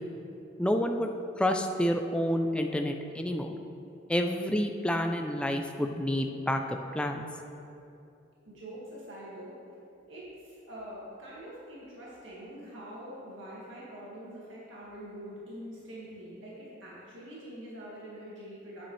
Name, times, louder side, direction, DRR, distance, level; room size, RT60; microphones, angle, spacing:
voice 1, 0.6-1.1 1.4-3.5 4.1-7.3, equal, 5° left, 4 dB, 0.4 m, -29 dB
voice 2, 8.5-9.5 10.1-18.9, equal, 80° right, -7 dB, 1.9 m, -44 dB
8.8 x 8.7 x 3.2 m, 2.6 s
head